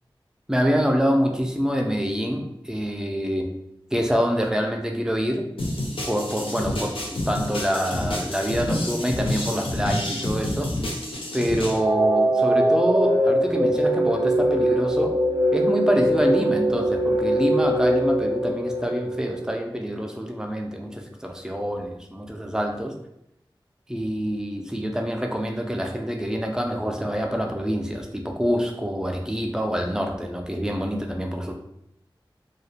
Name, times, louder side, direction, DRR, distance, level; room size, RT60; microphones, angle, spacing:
voice 1, 0.5-3.5 3.9-5.5 6.1-6.9 7.3-10.7 11.3-15.1 15.5-22.9 23.9-31.5, equal, 5° right, 2 dB, 0.4 m, -26 dB
sound 1, 5.6-11.8, left 1 dB, 80° left, 0.5 m, -29 dB
sound 2, 11.6-19.6, right 1 dB, 80° right, 0.4 m, -22 dB
2.3 x 2.1 x 2.7 m, 0.82 s
wide cardioid pair, 55°, 9 cm